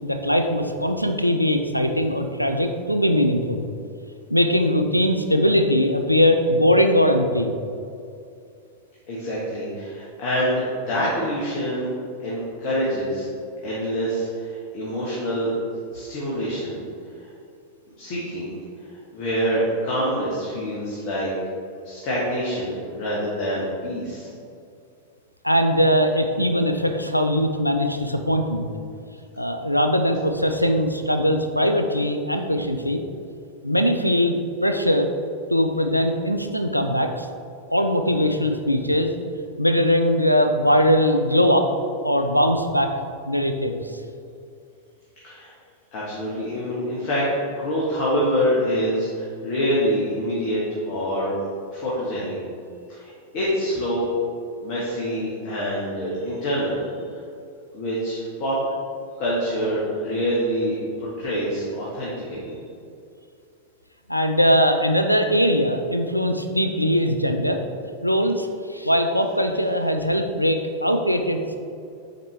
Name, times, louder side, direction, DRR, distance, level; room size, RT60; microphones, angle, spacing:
voice 1, 0.0-3.6 4.3-7.5 25.4-28.7 29.4-33.0 33.6-34.4 34.6-35.1 35.5-37.3 37.7-39.1 39.6-41.7 42.0-42.9 43.3-43.8 64.1-67.6 68.0-71.6, equal, 90° left, 6 dB, 0.4 m, -21 dB
voice 2, 9.1-11.9 12.2-13.3 13.6-15.5 15.9-16.8 18.0-18.5 19.1-21.3 21.8-24.3 45.2-45.5 45.9-51.3 51.7-52.4 52.9-54.1 54.6-56.8 57.7-58.6 59.2-62.6, equal, 45° left, -7 dB, 1.4 m, -26 dB
6.5 x 4.4 x 3.3 m, 2.4 s
figure-of-eight pair, 90°, 0 cm